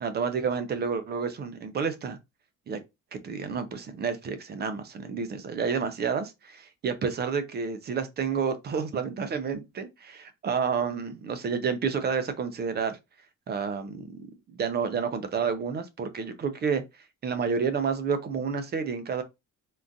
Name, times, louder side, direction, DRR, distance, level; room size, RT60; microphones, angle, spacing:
voice 1, 0.0-2.2 2.7-2.8 3.1-13.0 13.5-14.2 14.5-16.8 17.2-19.2, right 6 dB, 30° right, 0.4 m, -30 dB
3.6 x 2.3 x 2.6 m
cardioid pair, 170°, 32 cm